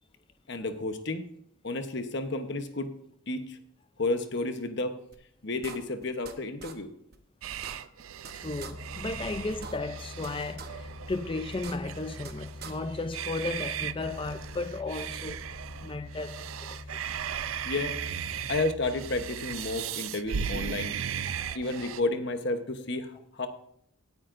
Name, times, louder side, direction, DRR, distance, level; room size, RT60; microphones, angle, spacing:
voice 1, 0.5-1.3 1.6-2.9 3.3-3.6 4.0-5.0 5.4-6.9 17.6-18.0 18.5-21.0 21.5-23.5, left 2 dB, 55° left, 0.9 m, -31 dB
sound 1, 5.1-5.2 5.6-6.3 6.6-6.7 7.1-7.2 7.5-8.3 8.6-8.7 9.1-9.2 9.5-10.3 10.6-10.7 11.1-11.2 11.5-12.3 12.6-12.7, right 6 dB, 45° right, 0.9 m, -43 dB
sound 2, 7.4-22.0, right 8 dB, 75° right, 0.4 m, -37 dB
voice 2, 8.3-15.5 15.8-16.8 21.3-21.6, left 3 dB, 25° left, 0.4 m, -35 dB
sound 3, 8.4-19.3, left 2 dB, 75° left, 1.0 m, -45 dB
16.5 x 9.3 x 2.6 m
head